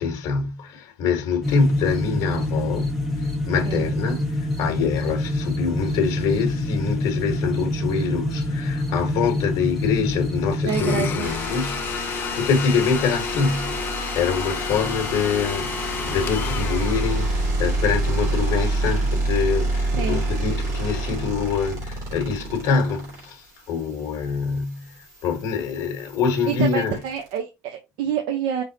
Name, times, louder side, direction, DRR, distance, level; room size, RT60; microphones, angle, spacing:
voice 1, 0.0-2.9 3.2-27.0, left 5 dB, 55° left, 1.1 m, -25 dB
sound 1, 1.4-11.2, left 1 dB, 5° right, 1.1 m, -26 dB
voice 2, 10.6-11.3 19.9-20.2 26.5-28.6, right 8 dB, 85° right, 0.8 m, -27 dB
Domestic sounds home sounds, 10.7-17.7, left 7 dB, 30° left, 0.4 m, -31 dB
sound 2, 11.2-27.4, right 2 dB, 50° right, 2.9 m, -28 dB
5.3 x 3.4 x 2.7 m
cardioid pair, 175°, 7 cm